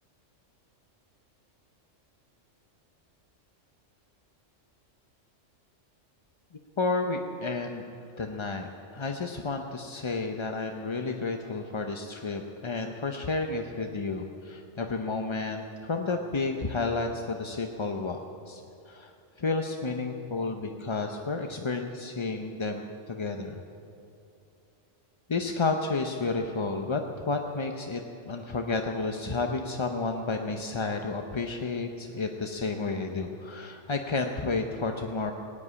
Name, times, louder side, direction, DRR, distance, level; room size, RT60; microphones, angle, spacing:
voice 1, 6.8-18.2 18.5-18.6 18.9-19.1 19.4-23.6 25.3-35.3, left 3 dB, 30° left, 4 dB, 0.5 m, -31 dB
17.5 x 8.6 x 9.6 m, 2.7 s
omnidirectional pair, 1.3 m